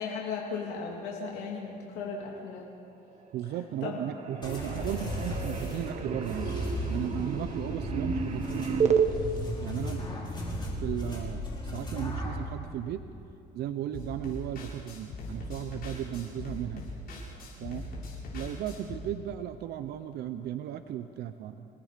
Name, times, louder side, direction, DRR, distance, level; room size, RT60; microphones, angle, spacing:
voice 1, 0.0-2.7 3.8-4.0, left 5 dB, 85° left, -2 dB, 2.8 m, -36 dB
sound 1, 3.1-3.6 3.9-9.1, right 6 dB, 40° right, 1.7 m, -32 dB
voice 2, 3.3-6.6 6.9-9.0 9.6-10.0 10.8-13.0 13.5-16.9 17.6-17.9 18.3-21.7, right 11 dB, 75° right, 9 dB, 0.8 m, -35 dB
sound 2, 4.4-12.4, equal, 25° left, 5.6 m, -35 dB
sound 3, 13.9-19.0, left 2 dB, 60° left, 7.2 m, -40 dB
28.0 x 19.0 x 5.2 m, 2.5 s
cardioid pair, 110°, 17 cm